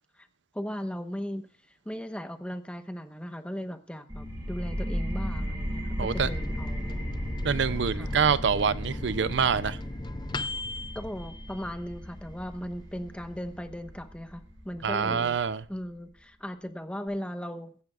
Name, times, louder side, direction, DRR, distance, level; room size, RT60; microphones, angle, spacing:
voice 1, 0.5-1.5 1.8-7.1 7.9-8.1 10.9-15.4 15.7-17.7, equal, 5° left, 1.1 m, -37 dB
sound 1, 4.1-15.5, equal, 20° right, 5.3 m, -36 dB
voice 2, 6.0-6.3 7.4-9.8 14.8-15.6, right 6 dB, 60° right, 0.6 m, -26 dB
Microwave oven, 6.1-12.2 12.6-12.7 12.9-13.6, left 2 dB, 20° left, 0.5 m, -39 dB
23.0 x 10.5 x 2.5 m
head